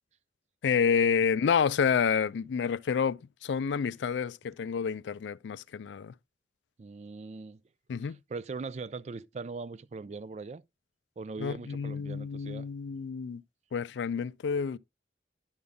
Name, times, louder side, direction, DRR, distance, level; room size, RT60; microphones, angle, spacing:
voice 1, 0.6-6.1 7.9-8.2 11.4-13.4 13.7-14.8, left 6 dB, 90° left, 0.4 m, -29 dB
voice 2, 6.8-7.6 8.0-10.6 11.2-12.7, right 4 dB, 40° right, 0.4 m, -40 dB
10.5 x 5.5 x 3.5 m
head